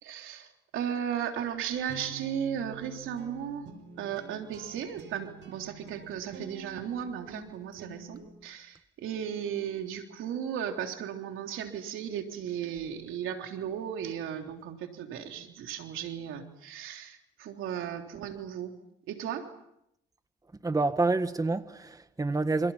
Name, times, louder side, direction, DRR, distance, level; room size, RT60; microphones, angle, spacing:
voice 1, 0.0-3.7 4.0-18.7 19.1-19.5, right 9 dB, 85° right, 3.5 m, -36 dB
sound 1, 1.4-8.3, right 6 dB, 70° right, 5.6 m, -47 dB
voice 2, 20.6-22.7, right 3 dB, 15° right, 1.6 m, -28 dB
29.0 x 27.5 x 5.8 m
cardioid pair, 90°, 20 cm